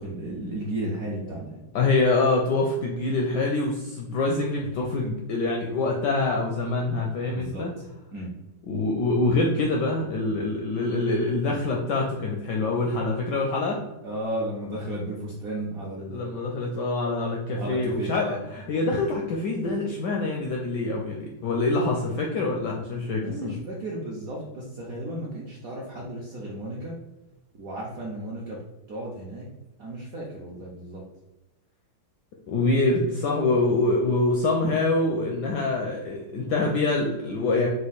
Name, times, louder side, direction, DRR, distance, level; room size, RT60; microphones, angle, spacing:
voice 1, 0.0-1.6 7.3-7.6 8.1-8.3 14.0-16.3 17.6-18.4 22.9-26.9 27.6-28.6 28.9-29.5 29.8-31.0, right 1 dB, 65° right, -4 dB, 0.8 m, -34 dB
voice 2, 1.7-7.7 8.6-13.8 16.1-23.5 32.5-37.7, left 2 dB, 75° left, 0 dB, 1.0 m, -25 dB
4.9 x 2.3 x 4.1 m, 1.0 s
omnidirectional pair, 2.4 m